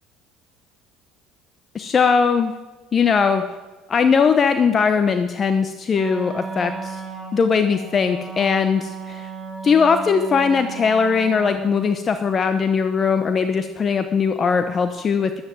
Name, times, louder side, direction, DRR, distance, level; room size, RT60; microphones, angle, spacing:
voice 1, 1.7-2.5 2.9-3.4 3.9-7.0 7.3-9.3 9.6-15.4, left 5 dB, 35° left, 9 dB, 1.0 m, -19 dB
Wind instrument woodwind instrument, 5.9-12.0, right 5 dB, 10° right, 6.3 m, -34 dB
13.5 x 11.5 x 7.7 m, 1.2 s
hypercardioid pair, 60°, 0 cm